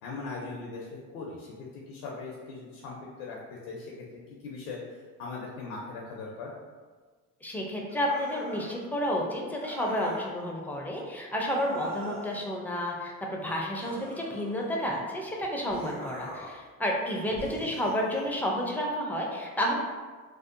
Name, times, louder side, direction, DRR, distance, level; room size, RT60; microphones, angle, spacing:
voice 1, 0.0-0.9 1.1-6.5 17.5-17.7, left 3 dB, 80° left, -3 dB, 0.6 m, -40 dB
voice 2, 7.4-19.7, equal, 5° left, -1 dB, 0.4 m, -31 dB
sound 1, 7.9-8.8 9.5-10.3 11.5-12.5 13.8-14.9 15.7-16.6 17.4-18.4, right 1 dB, 40° right, 1.1 m, -43 dB
2.7 x 2.0 x 2.5 m, 1.4 s
hypercardioid pair, 70°, 41 cm